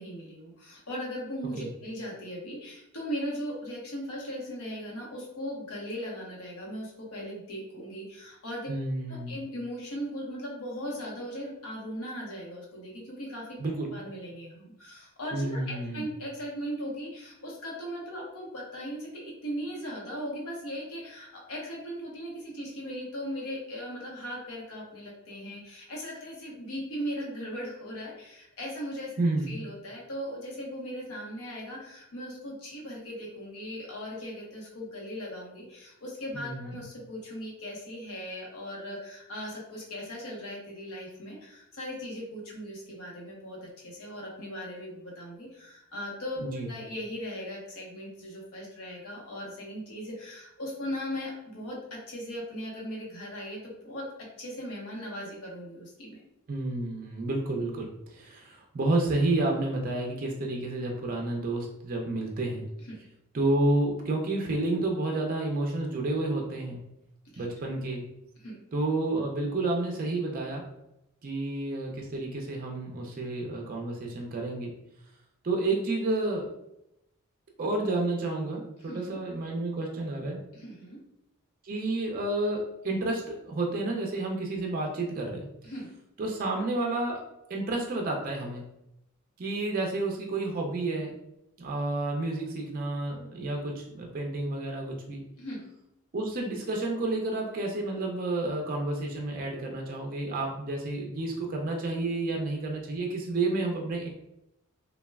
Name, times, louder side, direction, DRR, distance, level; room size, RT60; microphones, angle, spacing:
voice 1, 0.0-8.7 9.1-13.6 13.9-29.1 29.5-54.1 54.4-56.2 62.8-63.0 67.2-67.5 68.4-68.6 78.8-79.2 80.5-81.0 85.6-85.9 95.4-95.6, equal, 85° left, -3 dB, 0.9 m, -38 dB
voice 2, 8.7-9.4 13.6-13.9 15.3-16.1 29.2-29.5 36.3-36.8 46.4-46.7 56.5-62.7 63.3-66.8 67.4-68.1 68.7-70.6 71.2-74.7 75.4-76.5 77.6-80.4 81.6-85.5 86.2-87.2 87.5-88.6 89.4-91.2 91.6-95.2 96.1-104.1, right 2 dB, 40° right, 1 dB, 0.4 m, -30 dB
3.2 x 2.2 x 2.2 m, 0.84 s
head